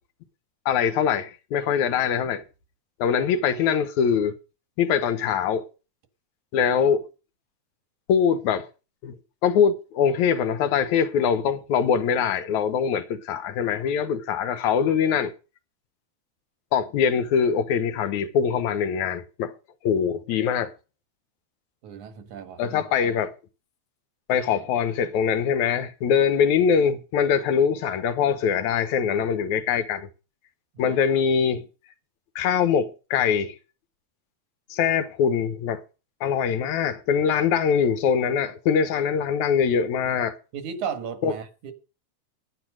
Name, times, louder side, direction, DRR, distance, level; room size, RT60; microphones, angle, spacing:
voice 1, 0.7-2.4 3.0-4.3 4.8-5.6 6.5-7.0 8.1-8.7 9.0-9.2 9.4-15.3 16.7-19.5 19.8-20.7 22.6-23.3 24.3-30.1 30.8-31.6 32.4-33.6 34.7-35.8 36.2-40.3 41.2-41.3, left 7 dB, 80° left, 2.5 m, -23 dB
voice 2, 21.8-22.8 30.7-31.0 40.5-41.7, right 7 dB, 85° right, 3.0 m, -35 dB
10.0 x 9.9 x 6.3 m
omnidirectional pair, 3.3 m